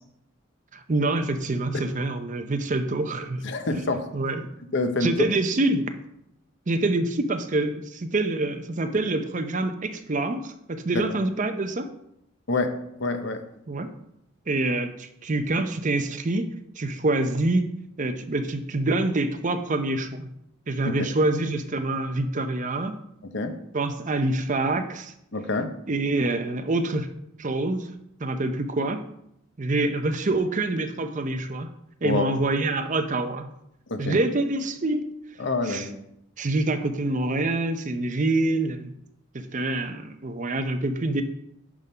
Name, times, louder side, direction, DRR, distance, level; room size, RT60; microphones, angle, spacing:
voice 1, 0.7-3.4 3.7-3.8 4.1-4.4 5.0-5.9 6.7-11.9 13.7-13.9 14.5-16.5 16.8-17.7 18.0-20.3 20.7-23.0 23.7-25.1 25.9-27.1 27.4-27.9 28.2-29.0 29.6-31.7 32.0-33.5 34.0-35.0 35.6-35.9 36.4-38.9 39.3-41.2, right 2 dB, 40° right, 8 dB, 0.6 m, -26 dB
voice 2, 3.4-4.1 4.7-5.1 10.9-11.0 12.5-13.4 20.8-21.1 23.3-23.5 25.3-25.7 32.0-32.2 33.9-34.2 35.4-36.0, left 3 dB, 60° left, 7 dB, 0.8 m, -27 dB
9.5 x 3.7 x 5.5 m, 0.77 s
head